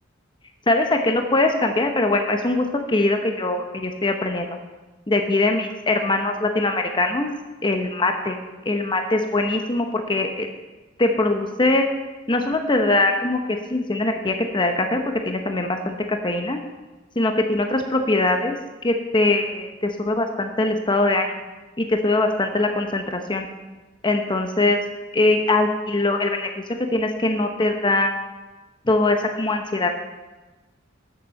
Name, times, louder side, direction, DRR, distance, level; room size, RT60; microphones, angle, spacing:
voice 1, 0.7-4.5 5.1-7.3 7.6-8.4 8.7-10.5 11.0-11.9 12.3-16.6 17.2-18.6 18.8-21.3 21.8-23.5 24.0-24.8 25.1-26.5 26.9-28.1 28.9-29.9, left 2 dB, 25° left, 5 dB, 0.8 m, -22 dB
12.0 x 7.0 x 6.6 m, 1.2 s
head